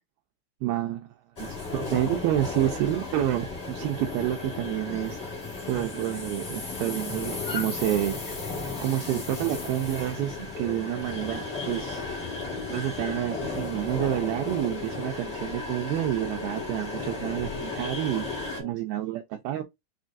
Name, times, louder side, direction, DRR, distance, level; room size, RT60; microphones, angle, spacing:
voice 1, 0.6-5.2 5.7-8.2 8.8-12.0 12.7-19.6, right 13 dB, 75° right, 2.4 m, -29 dB
sound 1, 1.4-18.6, left 3 dB, 45° left, 0.8 m, -35 dB
sound 2, 10.9-18.7, left 3 dB, 75° left, 0.3 m, -40 dB
6.3 x 3.1 x 2.6 m
omnidirectional pair, 4.7 m